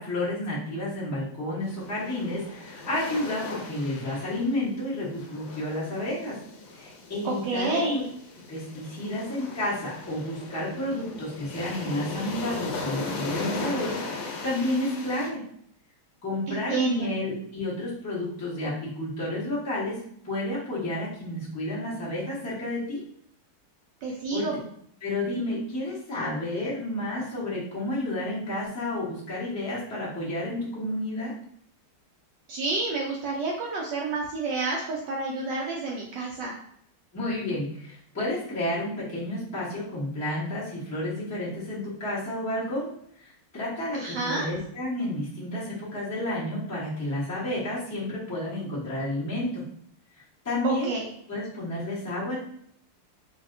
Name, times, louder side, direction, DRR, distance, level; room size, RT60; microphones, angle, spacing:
voice 1, 0.0-6.4 6.8-8.0 8.5-15.4 16.2-23.0 24.3-24.5 25.0-31.3 37.1-42.9 43.2-49.6 50.4-50.9 51.3-52.4, left 1 dB, 25° left, -9 dB, 0.4 m, -31 dB
sound 1, 1.6-15.3, left 3 dB, 70° left, 1.3 m, -38 dB
voice 2, 7.2-8.0 16.5-17.1 24.0-24.5 32.5-36.5 43.9-44.4 50.6-51.1, right 3 dB, 80° right, -2 dB, 0.9 m, -29 dB
3.3 x 2.7 x 2.5 m, 0.67 s
omnidirectional pair, 2.4 m